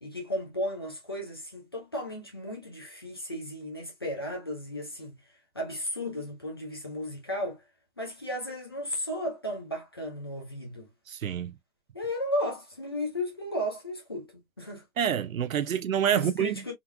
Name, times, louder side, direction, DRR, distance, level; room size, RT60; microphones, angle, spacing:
voice 1, 0.0-5.2 5.5-7.6 8.0-10.9 11.9-14.3 14.6-14.8 16.1-16.7, left 1 dB, 20° left, 0.6 m, -34 dB
voice 2, 11.1-11.5 15.0-16.7, right 9 dB, 70° right, 0.6 m, -27 dB
3.6 x 3.1 x 2.2 m
hypercardioid pair, 165°, 42 cm